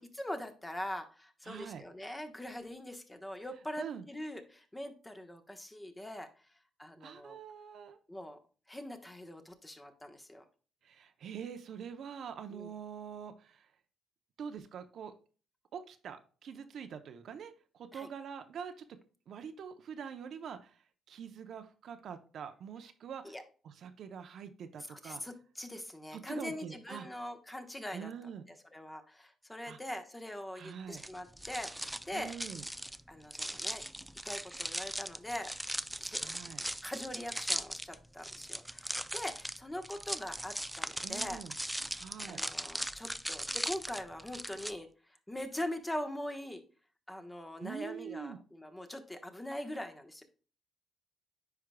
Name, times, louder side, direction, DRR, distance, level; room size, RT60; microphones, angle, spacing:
voice 1, 0.0-6.3 6.8-7.4 8.1-8.4 8.7-10.4 12.5-12.7 17.9-18.1 23.2-23.4 24.8-28.1 28.7-32.3 33.1-33.8 34.2-35.5 36.0-36.2 36.8-41.4 42.3-46.6 47.1-50.2, left 1 dB, 10° left, 6 dB, 1.1 m, -42 dB
voice 2, 1.4-1.8 3.8-4.1 7.0-8.0 10.8-13.7 14.4-15.1 15.7-18.8 19.3-23.4 23.6-25.2 26.1-27.1 27.9-28.4 29.6-29.8 30.6-31.0 32.1-32.6 36.1-36.6 41.0-41.5 41.9-42.4 47.6-48.4, right 7 dB, 65° right, 8 dB, 0.7 m, -45 dB
sound 1, 30.9-44.7, right 1 dB, 5° right, 0.3 m, -39 dB
9.7 x 4.6 x 2.2 m, 0.38 s
cardioid pair, 90°, 0 cm